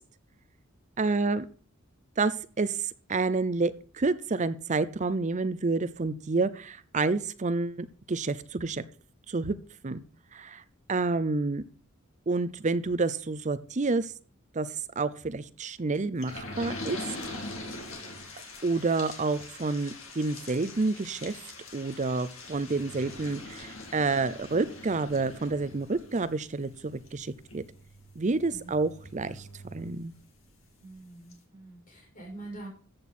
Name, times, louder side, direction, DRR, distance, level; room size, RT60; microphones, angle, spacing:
voice 1, 1.0-1.5 2.2-8.8 9.3-9.6 9.8-10.0 10.3-10.6 10.9-11.6 12.3-14.1 14.5-17.0 18.6-21.4 21.7-27.6 28.2-29.5 29.7-30.1, right 3 dB, 35° right, 15 dB, 0.6 m, -29 dB
sound 1, 16.2-30.5 30.9-31.0 31.3-31.4, left 2 dB, 65° left, 2.8 m, -43 dB
voice 2, 30.8-32.7, right 2 dB, 40° left, 0 dB, 6.3 m, -45 dB
14.0 x 8.2 x 4.3 m, 0.41 s
head